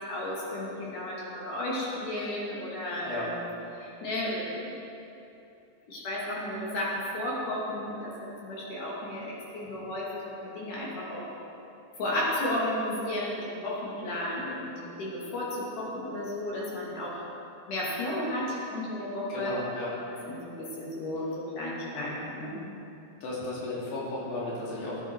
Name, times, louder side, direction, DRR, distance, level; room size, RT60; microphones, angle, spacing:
voice 1, 0.1-3.5 3.8-4.7 5.9-8.1 8.4-11.2 12.0-14.7 15.0-17.2 17.7-19.5 20.3-22.7, left 1 dB, 50° left, -6 dB, 3.7 m, -33 dB
voice 2, 19.3-19.9 23.2-25.0, left 2 dB, 80° left, -6 dB, 4.6 m, -34 dB
15.5 x 9.9 x 4.7 m, 2.9 s
omnidirectional pair, 4.8 m